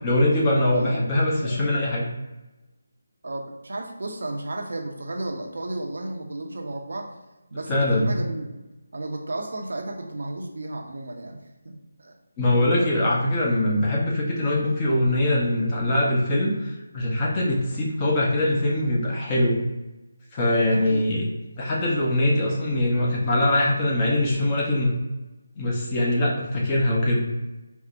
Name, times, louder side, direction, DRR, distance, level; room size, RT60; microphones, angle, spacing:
voice 1, 0.0-2.1 7.7-8.2 12.4-19.6 20.3-21.2 21.6-25.0 25.6-27.3, left 1 dB, 20° left, -3 dB, 0.7 m, -22 dB
voice 2, 0.6-1.6 3.2-7.1 7.5-8.6 8.9-12.1 20.7-21.0, right 2 dB, 70° right, 3 dB, 0.6 m, -33 dB
4.4 x 2.1 x 2.5 m, 1.0 s
figure-of-eight pair, 165°, 0 cm